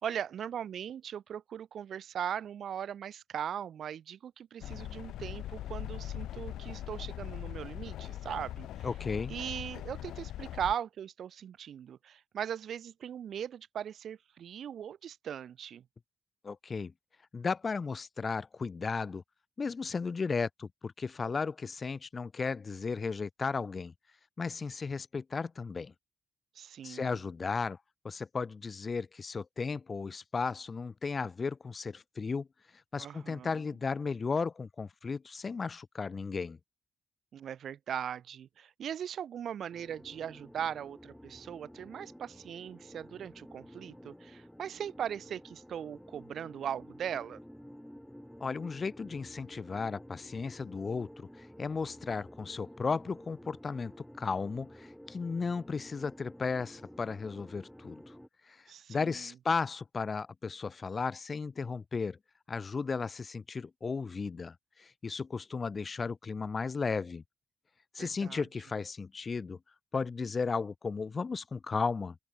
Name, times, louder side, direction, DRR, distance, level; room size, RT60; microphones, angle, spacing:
voice 1, 0.0-8.9 9.3-15.8 26.6-27.2 33.0-33.6 37.3-47.4 58.7-59.3 68.0-68.5, right 9 dB, 70° right, 2.2 m, -39 dB
sound 1, 4.6-10.7, left 12 dB, 85° left, 1.1 m, -41 dB
voice 2, 8.8-9.3 16.4-16.9 17.3-19.2 19.6-23.9 24.4-25.9 26.8-27.8 28.0-32.5 32.9-36.6 48.4-58.1 58.5-58.6 58.9-62.2 62.5-67.2 67.9-69.6 69.9-72.2, left 4 dB, 40° left, 1.0 m, -35 dB
sound 2, 39.7-58.3, equal, 5° left, 2.8 m, -52 dB
open air
cardioid pair, 70°, 0 cm